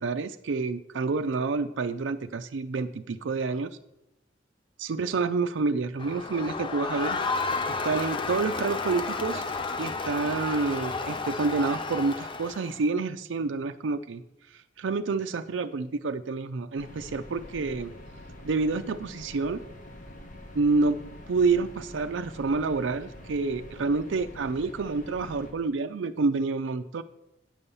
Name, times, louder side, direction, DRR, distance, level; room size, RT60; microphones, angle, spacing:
voice 1, 0.0-3.8 4.8-7.2 7.8-9.4 9.8-14.2 14.5-17.9 18.4-19.6 20.5-21.0 21.3-27.0, right 4 dB, 70° right, 8 dB, 0.4 m, -28 dB
Crowd, 6.0-12.8, left 4 dB, 25° left, 0.5 m, -32 dB
sound 1, 16.8-25.5, left 1 dB, 45° left, 1.4 m, -45 dB
9.1 x 5.4 x 7.0 m, 0.85 s
head